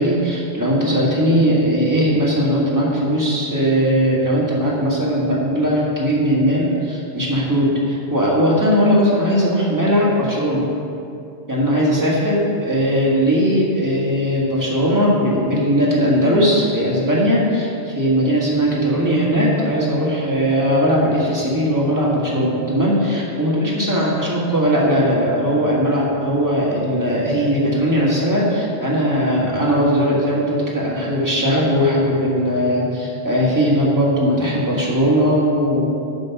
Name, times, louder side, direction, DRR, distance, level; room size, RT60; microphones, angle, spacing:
voice 1, 0.0-10.6 11.5-35.8, equal, 15° right, -6 dB, 1.5 m, -18 dB
7.5 x 4.5 x 5.8 m, 2.6 s
omnidirectional pair, 1.1 m